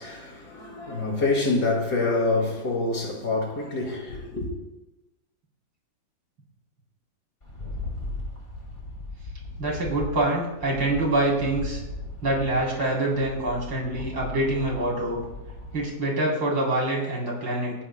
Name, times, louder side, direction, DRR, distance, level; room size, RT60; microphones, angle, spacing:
voice 1, 0.0-4.5, left 3 dB, 55° left, 2.7 m, -26 dB
Rattle, 7.4-15.9, left 2 dB, 25° left, 2.3 m, -38 dB
voice 2, 9.6-11.8 12.2-15.2 15.7-17.7, right 2 dB, 80° right, 4.5 m, -25 dB
26.5 x 9.7 x 2.2 m
omnidirectional pair, 2.1 m